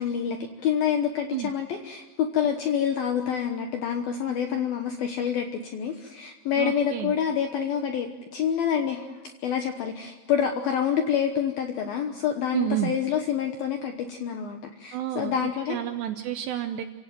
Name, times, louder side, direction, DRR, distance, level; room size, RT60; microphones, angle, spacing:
voice 1, 0.0-9.1 9.4-15.8, left 8 dB, 75° left, 5 dB, 2.2 m, -27 dB
voice 2, 6.6-7.2 12.5-12.9 14.9-15.3 15.7-16.8, right 12 dB, 75° right, 7 dB, 2.6 m, -29 dB
28.0 x 17.0 x 7.6 m, 1.3 s
omnidirectional pair, 5.9 m